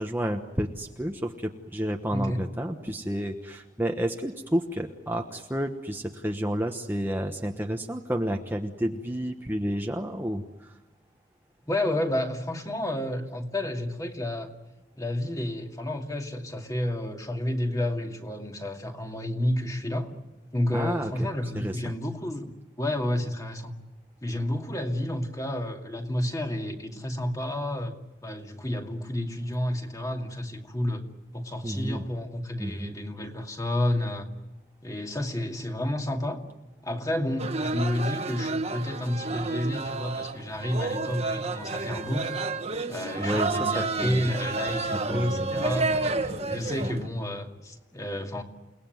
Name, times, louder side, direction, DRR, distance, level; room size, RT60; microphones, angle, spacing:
voice 1, 0.0-10.8 20.7-21.3 21.5-21.9 31.6-32.0 32.6-33.0 43.2-44.3 44.8-45.5 46.8-46.9, equal, 10° right, 3 dB, 1.2 m, -31 dB
voice 2, 2.1-2.5 11.7-14.5 15.0-20.1 20.5-23.7 24.2-27.9 28.2-31.0 31.3-34.3 34.8-36.4 36.8-42.3 42.9-48.4, left 1 dB, 20° left, 3 dB, 2.4 m, -30 dB
Mongolian Welcoming Song, 37.4-47.1, right 3 dB, 35° right, 1.5 m, -30 dB
29.5 x 19.0 x 9.4 m, 1.1 s
head